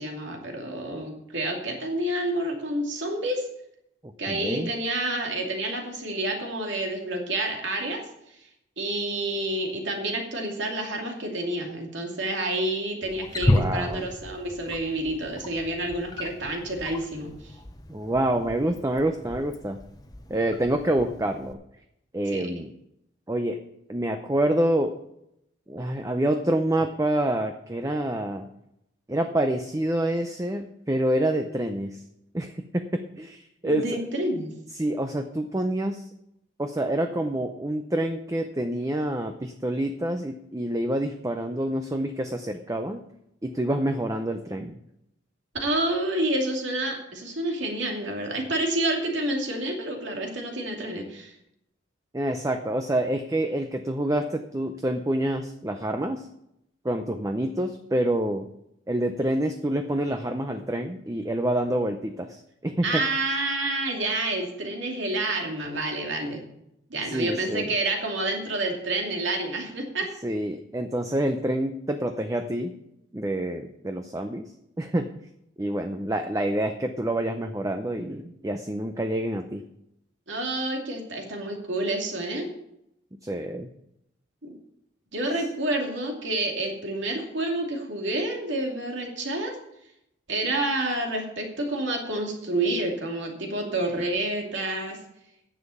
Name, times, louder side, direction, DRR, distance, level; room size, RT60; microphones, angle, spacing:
voice 1, 0.0-3.5 4.2-8.0 8.8-17.5 22.3-22.4 33.6-34.5 45.6-51.3 62.8-66.4 66.9-70.1 80.3-82.5 84.4-84.5 85.1-89.6 90.3-95.0, right 1 dB, 65° right, 1 dB, 2.6 m, -29 dB
voice 2, 4.3-4.7 13.5-14.1 17.9-19.8 20.3-21.6 22.1-22.7 23.3-23.6 23.9-25.0 25.7-28.5 29.1-32.0 32.3-34.1 34.7-36.0 36.6-43.0 43.4-44.8 52.1-56.3 56.8-58.5 58.9-63.0 67.1-67.7 70.2-72.8 73.1-74.5 74.8-75.2 75.6-79.6 83.2-83.7, right 1 dB, 15° right, 6 dB, 0.6 m, -27 dB
Wild animals, 13.0-21.5, left 1 dB, 20° left, 0.7 m, -33 dB
10.0 x 7.3 x 7.0 m, 0.80 s
head